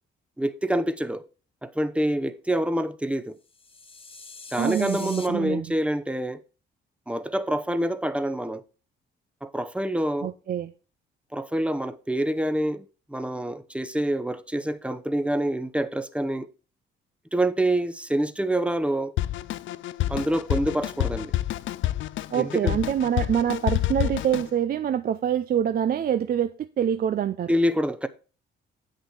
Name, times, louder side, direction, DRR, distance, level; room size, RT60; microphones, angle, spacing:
voice 1, 0.4-1.2 1.6-3.4 4.5-6.4 7.1-8.6 9.4-10.3 11.3-16.5 17.3-19.1 20.1-21.3 22.4-22.8 27.5-28.1, right 1 dB, 5° right, 0.8 m, -26 dB
sound 1, 3.5-5.3, left 4 dB, 30° left, 1.0 m, -43 dB
voice 2, 4.6-5.7 10.2-10.7 22.3-27.5, right 9 dB, 50° right, 0.5 m, -25 dB
Drum kit, 19.2-24.5, left 14 dB, 75° left, 0.5 m, -28 dB
8.1 x 6.6 x 4.5 m
cardioid pair, 90°, 20 cm